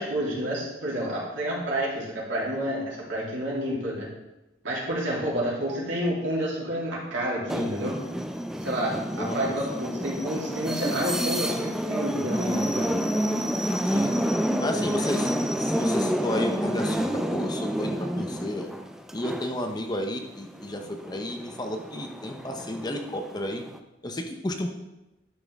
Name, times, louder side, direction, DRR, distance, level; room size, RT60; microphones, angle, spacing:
voice 1, 0.0-4.1 4.6-7.9 8.6-12.9 14.8-15.0, equal, 80° right, -6 dB, 3.1 m, -29 dB
sound 1, 7.5-20.2 20.6-23.8, equal, ahead, 0.4 m, -29 dB
voice 2, 9.2-9.5 13.8-14.1 14.6-15.3 15.6-18.7 19.1-23.6 24.0-24.7, left 1 dB, 20° left, 4 dB, 0.7 m, -32 dB
11.0 x 5.9 x 3.5 m, 0.99 s
head